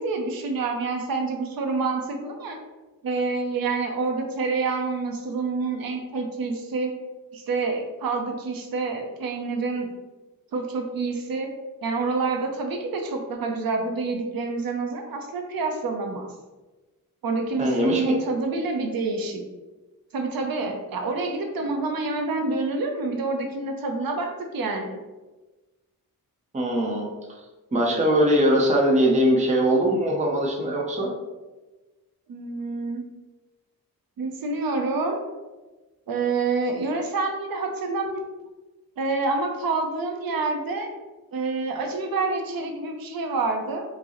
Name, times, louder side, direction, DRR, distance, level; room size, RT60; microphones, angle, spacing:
voice 1, 0.0-2.6 3.0-6.9 7.3-9.9 10.5-11.5 11.8-16.3 17.2-19.4 20.1-25.0 32.3-33.0 34.2-35.2 36.1-38.1 39.0-40.9 41.3-43.8, right 3 dB, 70° right, 3 dB, 0.5 m, -27 dB
voice 2, 17.6-18.0 26.5-27.0 27.7-31.1, equal, 20° right, -2 dB, 0.5 m, -21 dB
4.6 x 2.0 x 2.9 m, 1.2 s
wide cardioid pair, 160°, 36 cm